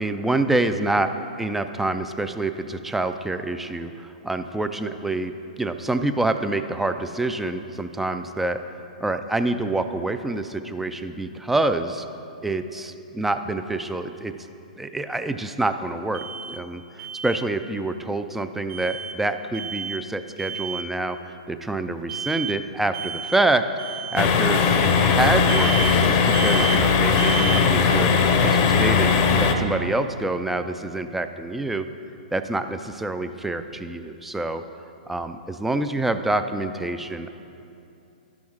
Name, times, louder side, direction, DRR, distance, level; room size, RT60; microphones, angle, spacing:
voice 1, 0.0-1.1 1.4-8.6 9.0-12.1 12.4-14.3 14.8-21.2 21.5-23.7 24.1-25.7 26.0-28.1 28.4-31.9 32.3-34.6 35.1-37.3, right 2 dB, 5° right, 9 dB, 0.3 m, -26 dB
Alarm, 16.1-16.6 17.0-17.4 18.7-19.1 19.5-20.0 20.4-20.9 22.1-22.6 22.9-23.4 23.8-24.2 25.5-26.0 26.3-26.8 27.2-27.6, right 7 dB, 35° right, 0.7 m, -31 dB
sound 1, 24.2-29.5, left 5 dB, 40° left, 0.6 m, -19 dB
11.5 x 6.2 x 3.6 m, 2.7 s
hypercardioid pair, 130°, 4 cm